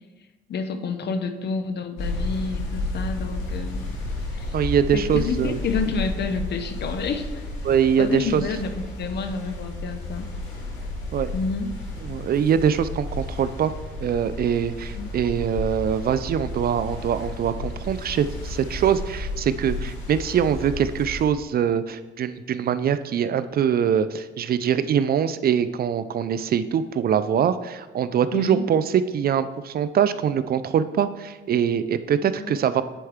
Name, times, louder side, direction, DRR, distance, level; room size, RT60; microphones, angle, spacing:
voice 1, 0.5-3.8 4.3-4.5 4.9-7.4 8.0-10.3 11.3-11.7 14.9-15.1 28.3-28.6 32.2-32.6, left 4 dB, 55° left, 8 dB, 0.8 m, -29 dB
sound 1, 2.0-21.2, left 1 dB, 85° left, 2.1 m, -32 dB
voice 2, 4.5-5.6 7.6-8.4 11.1-11.3 12.0-13.7 14.0-32.8, right 8 dB, 50° right, 13 dB, 0.4 m, -23 dB
10.0 x 4.4 x 3.6 m, 1.2 s
cardioid pair, 90°, 20 cm